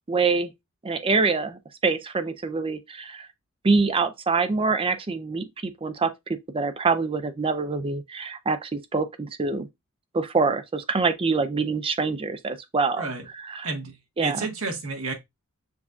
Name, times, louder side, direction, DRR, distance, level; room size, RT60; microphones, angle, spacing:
voice 1, 0.1-0.5 0.8-3.3 3.6-9.7 10.1-13.0 13.6-13.7 14.2-14.4, right 4 dB, 25° right, 0.5 m, -25 dB
voice 2, 13.0-13.3 13.6-15.1, right 3 dB, 70° right, 1.3 m, -31 dB
6.9 x 2.7 x 2.3 m
head